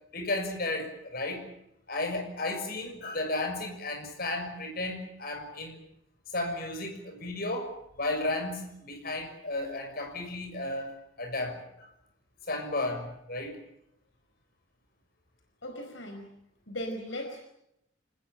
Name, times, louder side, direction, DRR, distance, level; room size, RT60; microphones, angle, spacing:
voice 1, 0.1-1.4 1.9-5.8 6.3-10.9 11.2-11.9 12.5-13.6, left 2 dB, 50° left, 4 dB, 6.4 m, -33 dB
voice 2, 15.6-16.3 16.7-17.4, equal, 70° left, 4 dB, 4.7 m, -37 dB
27.0 x 20.0 x 9.0 m, 0.81 s
head